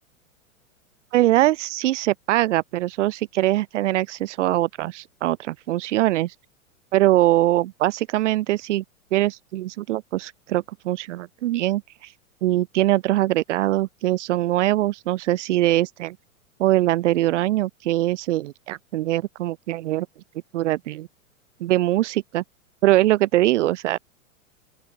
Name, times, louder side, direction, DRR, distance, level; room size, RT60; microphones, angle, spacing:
voice 1, 1.1-6.3 6.9-8.8 9.1-12.1 12.4-16.2 16.6-20.1 20.5-21.1 21.6-22.4 22.8-24.0, right 15 dB, 60° right, 5.9 m, -22 dB
open air
figure-of-eight pair, 100°, 41 cm